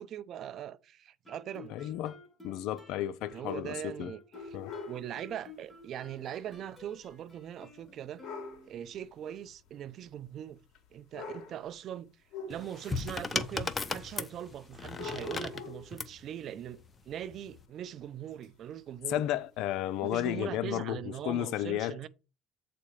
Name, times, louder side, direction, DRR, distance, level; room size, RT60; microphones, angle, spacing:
voice 1, 0.0-1.9 3.3-4.6 4.9-8.2 8.7-10.6 10.9-12.1 12.5-19.2 20.0-22.1, right 10 dB, 55° right, 0.6 m, -41 dB
Guitar, 1.2-9.0, left 3 dB, 5° left, 1.8 m, -52 dB
voice 2, 1.7-2.2 2.4-4.1 4.5-4.7 19.1-22.1, left 13 dB, 70° left, 0.5 m, -33 dB
sound 1, 4.3-5.1 6.2-6.4 6.8-6.9 8.2-8.7 9.7-9.8 10.7-10.8 11.1-11.7 12.3-13.0 13.7-13.8 14.9-15.9 18.4-18.5 19.2-19.3 20.1-20.2, left 4 dB, 50° left, 2.6 m, -43 dB
sound 2, 12.5-16.2 17.2-17.6, left 4 dB, 25° left, 0.7 m, -36 dB
7.9 x 4.3 x 4.9 m
supercardioid pair, 100°, 0 cm